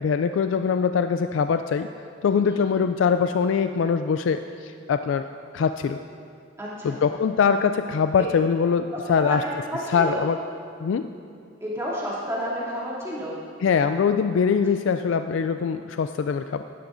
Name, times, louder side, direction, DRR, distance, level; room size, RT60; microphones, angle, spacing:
voice 1, 0.0-1.9 2.2-5.2 5.5-6.0 6.8-9.4 9.9-10.4 10.8-11.1 13.6-16.6, left 6 dB, 75° left, 9 dB, 0.3 m, -23 dB
voice 2, 6.6-7.0 8.9-10.3 11.6-13.4, equal, 15° right, -8 dB, 2.7 m, -31 dB
16.5 x 12.0 x 2.6 m, 2.4 s
head